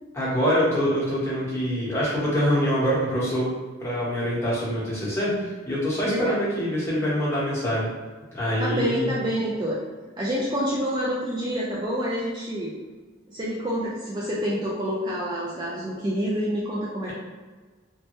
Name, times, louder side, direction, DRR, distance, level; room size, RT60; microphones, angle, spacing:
voice 1, 0.1-3.5 3.8-7.9 8.3-9.1, equal, 15° left, -9 dB, 1.0 m, -25 dB
voice 2, 6.0-6.4 8.6-9.8 10.2-12.7 13.3-17.1, equal, 20° right, -6 dB, 0.3 m, -27 dB
3.0 x 2.1 x 2.9 m, 1.3 s
head